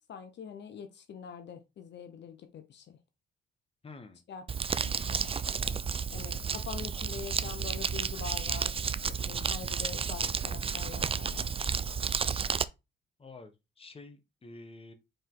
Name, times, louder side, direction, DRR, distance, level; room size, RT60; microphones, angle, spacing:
voice 1, 0.1-3.0 4.3-4.4 4.8-5.3 6.1-11.5, left 7 dB, 60° left, 0.9 m, -44 dB
voice 2, 3.8-4.2 13.2-14.9, left 3 dB, 30° left, 1.3 m, -49 dB
Crumpling crinkling, 4.5-12.6, right 6 dB, 30° right, 0.5 m, -32 dB
5.2 x 4.8 x 3.8 m
cardioid pair, 90°, 20 cm